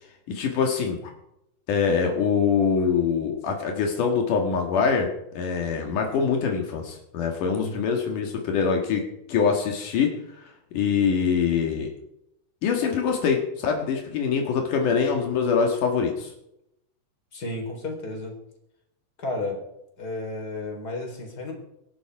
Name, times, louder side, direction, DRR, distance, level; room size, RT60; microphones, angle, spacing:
voice 1, 0.3-1.0 1.7-9.0 9.3-10.1 10.7-11.9 12.6-16.3, left 6 dB, 80° left, 2 dB, 3.3 m, -24 dB
voice 2, 17.3-18.3 19.2-19.6 20.0-21.5, left 2 dB, 30° left, 2 dB, 4.4 m, -32 dB
25.0 x 11.5 x 4.8 m, 0.82 s
omnidirectional pair, 3.7 m